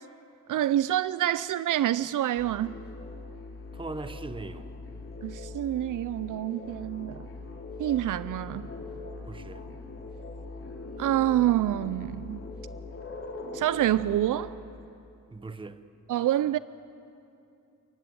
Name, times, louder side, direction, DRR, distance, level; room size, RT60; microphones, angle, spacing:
voice 1, 0.5-2.7 5.2-7.3 7.8-8.7 11.0-12.4 13.5-14.5 16.1-16.6, right 13 dB, 85° right, 0.5 m, -27 dB
sound 1, 2.4-14.5, left 3 dB, 45° left, 3.0 m, -41 dB
voice 2, 3.7-4.6 9.3-9.6 15.3-15.8, right 3 dB, 15° right, 0.8 m, -39 dB
29.5 x 16.0 x 9.5 m
wide cardioid pair, 150°, 31 cm